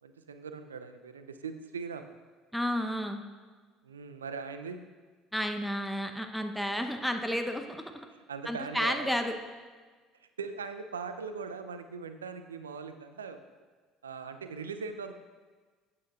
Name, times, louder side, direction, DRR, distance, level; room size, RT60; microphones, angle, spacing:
voice 1, 0.0-2.1 3.8-4.8 8.3-9.1 10.2-13.4 14.0-15.1, right 5 dB, 85° right, 9 dB, 0.5 m, -40 dB
voice 2, 2.5-3.2 5.3-7.9 8.5-9.3, equal, ahead, 4 dB, 0.8 m, -31 dB
14.5 x 8.7 x 2.4 m, 1.4 s
figure-of-eight pair, 60°, 0 cm